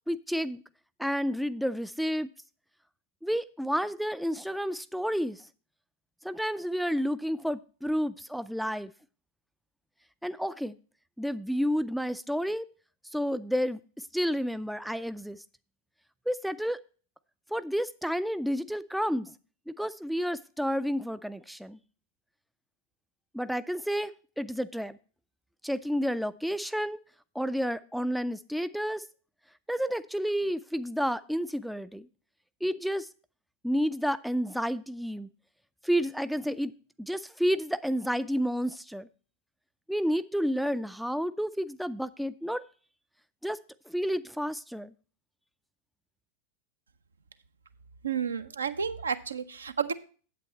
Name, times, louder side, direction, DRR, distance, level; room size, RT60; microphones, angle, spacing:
voice 1, 0.1-0.6 1.0-2.3 3.2-5.4 6.2-8.9 10.2-10.8 11.2-12.7 13.1-13.8 14.1-15.4 16.3-16.8 17.5-19.3 19.7-21.8 23.3-24.1 24.4-25.0 25.6-27.0 27.4-29.0 29.7-32.1 32.6-33.1 33.6-35.3 35.8-36.7 37.0-39.1 39.9-42.6 43.4-43.6 43.9-44.9, equal, ahead, 14 dB, 0.3 m, -30 dB
voice 2, 48.0-49.9, right 7 dB, 70° right, 11 dB, 0.6 m, -31 dB
8.4 x 8.3 x 4.2 m, 0.39 s
figure-of-eight pair, 90°, 0 cm